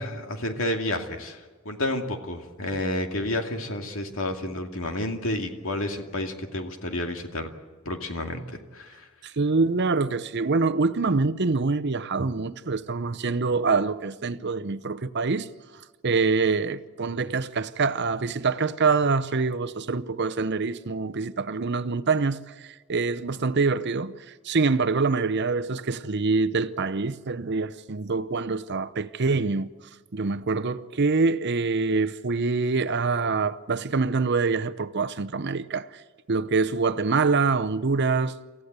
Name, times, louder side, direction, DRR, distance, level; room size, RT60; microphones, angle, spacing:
voice 1, 0.0-7.5 7.9-9.1, left 1 dB, 65° left, 2.5 m, -30 dB
voice 2, 9.2-15.5 16.0-29.7 30.1-36.0 36.3-38.4, right 4 dB, 50° right, 0.8 m, -25 dB
28.0 x 15.0 x 8.1 m
head